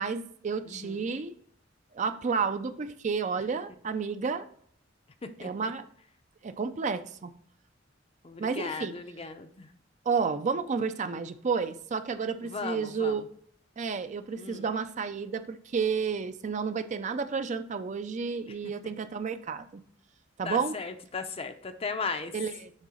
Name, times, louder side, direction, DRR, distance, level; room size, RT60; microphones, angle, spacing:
voice 1, 0.0-1.4 1.9-4.5 5.4-5.8 6.4-7.3 8.4-9.0 10.1-13.2 13.8-19.8 20.4-20.8 22.3-22.7, right 5 dB, 40° right, 10 dB, 0.4 m, -31 dB
voice 2, 0.7-1.0 5.4-5.5 8.2-9.7 12.4-13.1 14.4-14.7 18.8-18.9 20.4-22.3, left 4 dB, 30° left, 8 dB, 0.5 m, -36 dB
6.5 x 3.8 x 4.9 m, 0.62 s
head